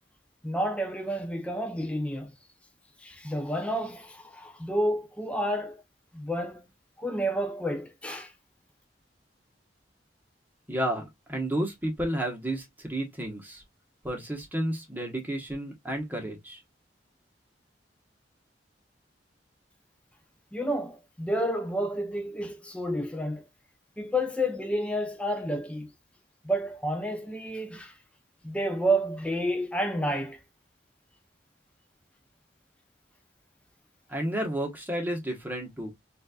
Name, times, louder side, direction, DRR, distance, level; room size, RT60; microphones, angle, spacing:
voice 1, 0.4-2.3 3.0-5.8 6.1-6.6 7.0-8.3 20.5-23.4 24.0-25.9 26.4-27.9 28.4-30.4, equal, 5° left, 0.6 m, -30 dB
voice 2, 10.7-13.6 14.0-16.6 34.1-35.9, right 1 dB, 10° right, 1.2 m, -31 dB
4.2 x 2.6 x 2.3 m
head